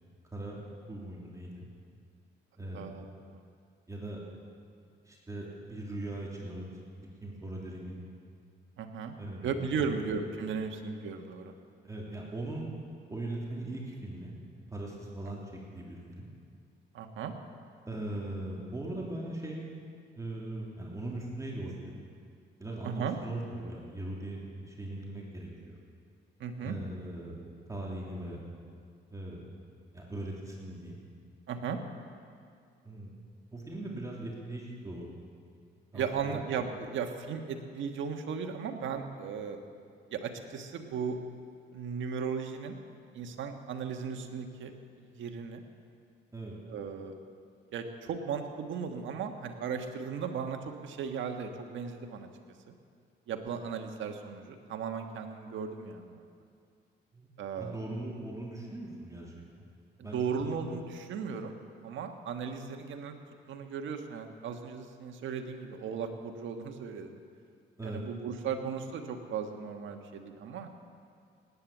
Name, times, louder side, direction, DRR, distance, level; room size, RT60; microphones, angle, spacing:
voice 1, 0.9-1.7 2.6-2.9 3.9-4.2 5.0-6.6 7.2-8.0 9.2-9.9 11.8-12.7 13.1-14.3 14.7-16.3 17.9-19.6 20.1-22.0 22.6-25.8 26.6-27.4 27.7-28.4 29.1-29.5 29.9-31.0 32.8-33.2 33.5-35.1 35.9-36.1 46.3-46.6 57.1-57.3 57.6-59.6 60.0-60.5 67.8-68.0, right 1 dB, 15° right, -3 dB, 2.9 m, -40 dB
voice 2, 2.7-3.4 8.8-9.2 9.4-11.5 16.9-17.3 22.8-23.2 26.4-26.7 31.5-31.8 35.9-39.6 40.1-41.2 41.7-42.8 43.1-44.7 45.0-45.6 46.7-47.1 47.7-52.3 52.7-52.8 53.3-56.2 57.4-57.8 60.0-61.5 61.8-63.2 63.5-67.2 67.8-70.7, right 6 dB, 75° right, 5 dB, 1.5 m, -36 dB
18.5 x 9.5 x 7.3 m, 2.3 s
cardioid pair, 90°, 20 cm